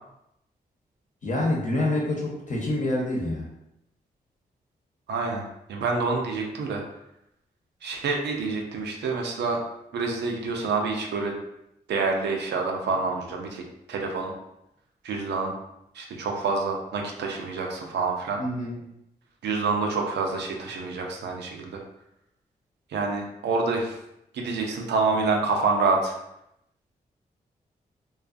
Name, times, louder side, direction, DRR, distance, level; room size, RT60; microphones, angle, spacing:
voice 1, 1.2-3.5 18.4-18.7, left 1 dB, 45° left, -3 dB, 0.9 m, -26 dB
voice 2, 5.1-6.8 7.8-9.6 9.9-11.4 11.9-14.3 15.0-15.5 15.9-18.4 19.4-21.8 22.9-24.0 24.3-26.1, right 4 dB, 80° right, 1 dB, 0.5 m, -27 dB
2.4 x 2.3 x 2.4 m, 0.82 s
supercardioid pair, 45°, 17 cm